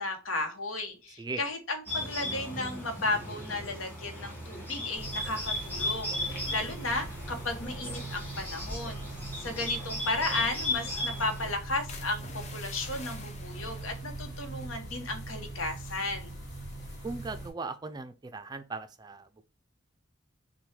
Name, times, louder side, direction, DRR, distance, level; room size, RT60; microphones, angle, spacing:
voice 1, 0.0-9.0 9.4-16.3, left 2 dB, 85° left, 1.0 m, -34 dB
Bird, 1.9-11.5, left 1 dB, 10° left, 1.5 m, -36 dB
sound 1, 5.0-17.5, right 2 dB, 55° left, 2.6 m, -41 dB
sound 2, 11.9-15.6 15.9-16.3 16.7-17.0, left 4 dB, 35° left, 0.6 m, -49 dB
voice 2, 17.0-19.4, right 3 dB, 20° right, 0.4 m, -38 dB
6.0 x 2.2 x 3.2 m
head